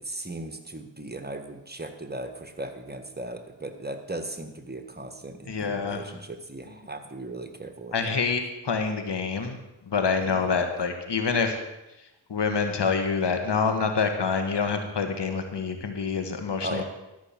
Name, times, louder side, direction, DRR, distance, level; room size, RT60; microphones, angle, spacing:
voice 1, 0.0-8.2 10.2-10.6 16.6-16.8, right 2 dB, 20° right, 7 dB, 1.5 m, -37 dB
voice 2, 5.5-6.0 7.9-9.6 9.9-11.6 12.3-16.8, left 5 dB, 65° left, 6 dB, 1.6 m, -26 dB
13.5 x 6.1 x 7.2 m, 0.97 s
cardioid pair, 40°, 45 cm